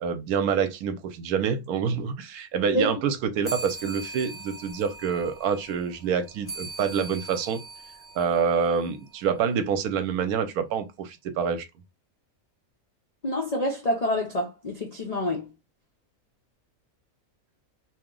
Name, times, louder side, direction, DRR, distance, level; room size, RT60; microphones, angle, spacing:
voice 1, 0.0-7.6 8.2-11.7, right 6 dB, 80° right, 1.1 m, -27 dB
sound 1, 3.4-9.3, right 2 dB, 25° left, 1.4 m, -41 dB
voice 2, 13.2-15.5, left 1 dB, 75° left, 0.3 m, -27 dB
2.8 x 2.1 x 3.7 m
omnidirectional pair, 1.6 m